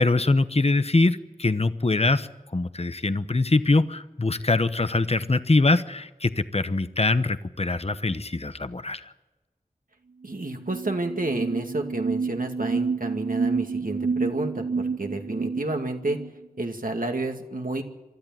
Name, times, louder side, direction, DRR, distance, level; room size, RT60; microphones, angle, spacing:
voice 1, 0.0-9.0, left 2 dB, 45° left, 12 dB, 0.9 m, -23 dB
sound 1, 10.2-10.3 10.6-16.3, right 5 dB, 50° right, 0.7 m, -29 dB
voice 2, 10.2-16.2 16.6-17.8, right 2 dB, 65° right, 4 dB, 2.4 m, -30 dB
24.0 x 13.5 x 9.1 m, 1.1 s
wide cardioid pair, 50°, 15 cm